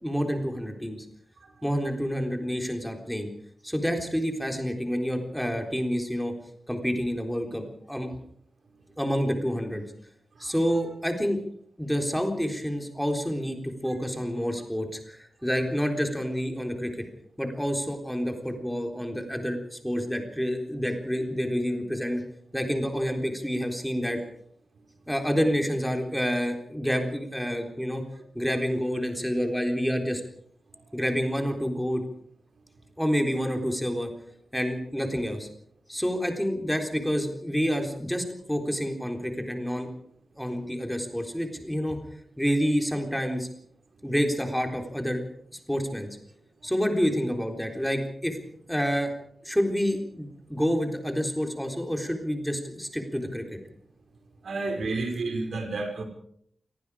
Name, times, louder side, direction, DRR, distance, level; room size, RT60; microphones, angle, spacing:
voice 1, 0.0-1.1 1.6-3.3 3.6-6.3 6.7-8.1 9.0-9.8 10.4-11.4 11.8-16.9 17.4-22.2 22.5-24.2 25.1-28.0 28.3-30.2 30.9-32.0 33.0-34.1 34.5-35.5 35.9-39.9 40.4-42.0 42.4-43.5 44.0-45.2 45.7-46.1 46.6-48.4 48.7-49.1 49.4-53.4, equal, ahead, 3 dB, 3.9 m, -28 dB
voice 2, 54.4-56.0, right 3 dB, 80° right, 5 dB, 5.3 m, -30 dB
29.0 x 18.5 x 5.0 m, 0.67 s
wide cardioid pair, 125°, 0 cm